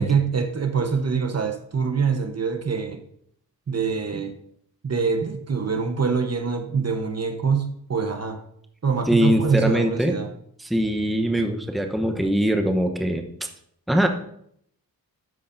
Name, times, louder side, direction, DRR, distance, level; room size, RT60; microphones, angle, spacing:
voice 1, 0.0-3.0 3.7-4.3 4.8-8.4 8.8-10.3, right 5 dB, 40° right, 5 dB, 1.1 m, -24 dB
voice 2, 9.1-10.1 10.6-13.2 13.9-14.1, equal, ahead, 4 dB, 1.0 m, -22 dB
13.0 x 9.9 x 2.7 m, 0.71 s
wide cardioid pair, 100°, 38 cm